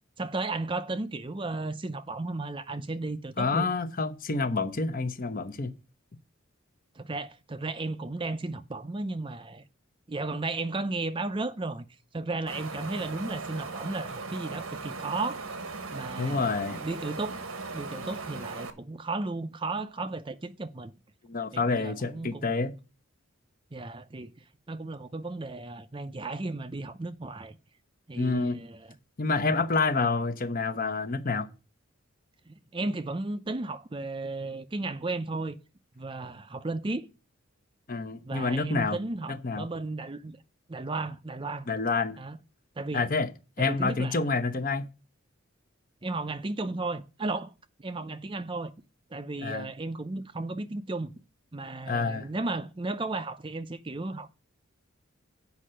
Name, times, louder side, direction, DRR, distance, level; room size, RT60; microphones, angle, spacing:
voice 1, 0.2-3.7 6.9-9.6 10.1-11.8 12.1-15.5 15.9-16.5 16.8-17.5 17.7-20.9 21.5-22.5 23.7-24.3 24.7-27.6 28.1-28.9 32.5-35.6 36.0-37.1 38.2-40.4 40.7-41.7 42.2-42.4 42.8-43.1 43.6-44.2 46.0-47.5 47.8-48.7 49.1-51.1 51.5-54.3, right 2 dB, 25° right, 0.5 m, -34 dB
voice 2, 3.4-5.7 16.2-16.8 21.3-22.7 28.2-28.6 29.2-31.5 37.9-39.0 39.3-39.7 41.7-42.2 42.9-43.3 43.6-44.8 49.4-49.7 51.9-52.3, left 3 dB, 45° left, 0.8 m, -28 dB
Wind, 12.5-18.7, right 3 dB, 90° right, 1.3 m, -38 dB
8.3 x 5.5 x 7.5 m
head